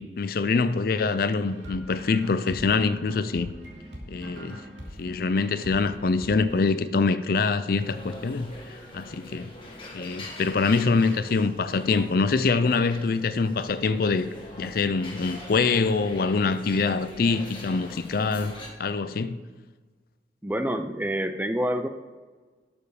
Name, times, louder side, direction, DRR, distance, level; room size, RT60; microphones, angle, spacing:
voice 1, 0.0-3.5 4.1-4.6 5.0-8.5 8.9-9.5 9.9-14.3 14.6-19.4, left 4 dB, 55° left, 0.5 m, -24 dB
sound 1, 1.4-6.6, equal, 85° right, 2.6 m, -42 dB
sound 2, 7.7-18.7, left 1 dB, 30° left, 1.9 m, -43 dB
voice 2, 20.4-21.9, equal, 10° right, 0.5 m, -27 dB
12.0 x 7.0 x 4.9 m
head